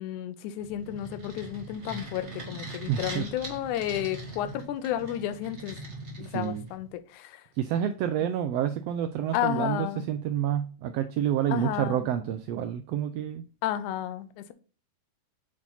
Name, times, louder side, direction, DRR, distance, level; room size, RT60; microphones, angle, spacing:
voice 1, 0.0-5.8 6.2-7.4 9.3-10.1 11.5-12.1 13.6-14.5, left 11 dB, 85° left, 2.1 m, -32 dB
sound 1, 0.6-6.9, right 2 dB, 25° right, 1.8 m, -41 dB
voice 2, 2.9-3.3 6.2-6.7 7.6-13.4, right 10 dB, 90° right, 1.4 m, -29 dB
8.6 x 4.3 x 4.0 m
omnidirectional pair, 3.4 m